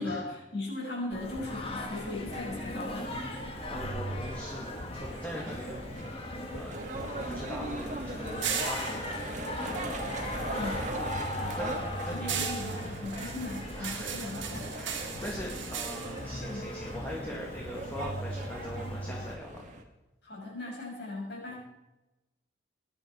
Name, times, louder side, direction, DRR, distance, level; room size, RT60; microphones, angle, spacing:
voice 1, 0.0-3.1 10.5-10.9 11.4-11.6 12.1-14.7 16.4-16.7 20.2-21.6, left 2 dB, 60° left, -3 dB, 6.8 m, -38 dB
Singing, 1.1-19.3, left 1 dB, 30° left, 1.5 m, -38 dB
sound 1, 1.4-19.8, right 1 dB, 40° right, 1.7 m, -41 dB
voice 2, 3.7-5.8 6.5-9.6 11.2-11.8 12.1-12.5 13.8-19.6 21.5-21.6, equal, 10° left, -3 dB, 2.2 m, -42 dB
sound 2, 6.1-10.6 10.9-17.3, right 7 dB, 80° right, 2.1 m, -39 dB
20.5 x 10.5 x 4.8 m, 1.0 s
head